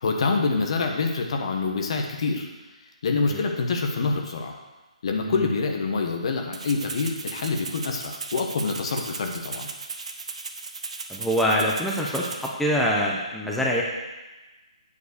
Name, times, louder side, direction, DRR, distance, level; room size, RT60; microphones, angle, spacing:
voice 1, 0.0-2.5 3.0-4.5 5.0-9.7, left 4 dB, 50° left, 3 dB, 1.3 m, -26 dB
Rattle (instrument), 6.5-12.5, right 4 dB, 60° right, 0.9 m, -36 dB
voice 2, 11.1-13.8, equal, 5° left, -3 dB, 0.9 m, -25 dB
8.6 x 4.7 x 6.6 m, 1.1 s
figure-of-eight pair, 140°, 4 cm